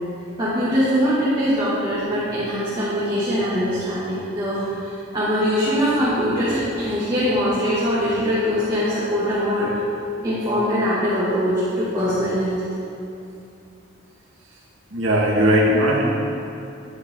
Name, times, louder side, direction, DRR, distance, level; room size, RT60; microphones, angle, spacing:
voice 1, 0.4-9.7 10.2-12.6, equal, 25° right, -11 dB, 2.7 m, -22 dB
voice 2, 14.9-16.1, equal, 90° right, -3 dB, 2.3 m, -18 dB
12.0 x 11.0 x 4.0 m, 2.6 s
head